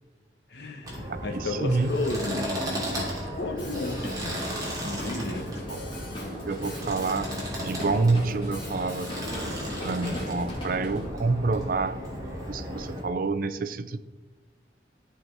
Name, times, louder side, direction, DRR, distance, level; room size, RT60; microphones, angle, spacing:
voice 1, 0.5-3.1 3.4-4.5 4.8-5.5, left 2 dB, 70° left, 4 dB, 1.2 m, -33 dB
sound 1, 0.8-13.0, equal, 20° right, 2.7 m, -35 dB
voice 2, 1.1-1.9 5.7-5.8 6.4-7.3 7.6-9.2 9.8-12.0 12.5-14.0, right 3 dB, 50° right, 11 dB, 0.5 m, -27 dB
Drum kit, 3.6-11.1, equal, 30° left, 2.5 m, -39 dB
13.5 x 4.7 x 4.6 m, 1.2 s
head